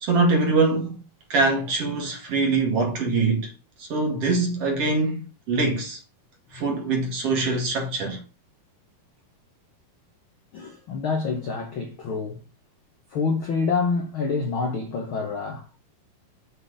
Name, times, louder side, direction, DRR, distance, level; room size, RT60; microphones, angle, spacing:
voice 1, 0.0-1.0 1.3-3.5 3.8-5.2 5.5-6.0 6.5-8.2, right 3 dB, 50° right, 2.5 m, -23 dB
voice 2, 10.5-12.4 13.1-15.8, left 4 dB, 70° left, 1.2 m, -27 dB
7.9 x 4.0 x 6.4 m
omnidirectional pair, 3.8 m